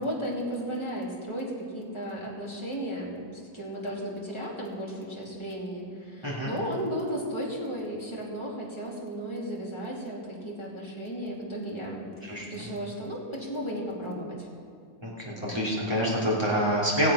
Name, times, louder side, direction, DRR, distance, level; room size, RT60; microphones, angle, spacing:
voice 1, 0.0-14.5, equal, 15° left, -4 dB, 2.7 m, -34 dB
voice 2, 6.2-6.5 12.3-12.6 15.0-17.1, equal, 15° right, -5 dB, 3.4 m, -27 dB
20.0 x 7.5 x 5.8 m, 2.4 s
omnidirectional pair, 1.8 m